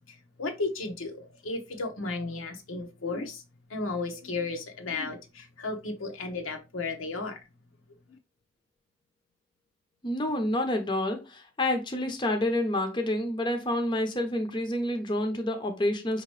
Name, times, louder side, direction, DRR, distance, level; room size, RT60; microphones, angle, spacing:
voice 1, 0.4-3.4 3.7-7.4, left 3 dB, 85° left, 0.9 m, -34 dB
voice 2, 10.0-16.2, left 1 dB, 25° left, 0.6 m, -28 dB
5.3 x 2.9 x 3.0 m
head